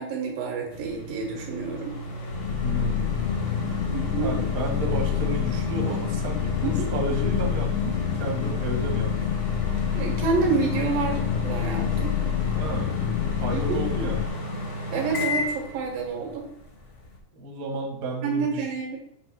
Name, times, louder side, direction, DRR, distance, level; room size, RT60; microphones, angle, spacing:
voice 1, 0.0-2.0 3.9-4.3 6.6-6.9 9.9-12.2 13.5-13.8 14.9-16.5 18.2-19.0, right 4 dB, 85° right, 1 dB, 3.2 m, -28 dB
sound 1, 0.7-17.2, left 1 dB, 55° left, 0.7 m, -34 dB
sound 2, 2.3-14.3, left 10 dB, 85° left, 1.5 m, -27 dB
voice 2, 2.6-3.1 4.2-9.1 12.5-12.9 13.4-14.3 17.3-18.7, right 1 dB, 55° right, 0 dB, 1.0 m, -31 dB
7.1 x 3.2 x 6.0 m, 0.72 s
omnidirectional pair, 3.9 m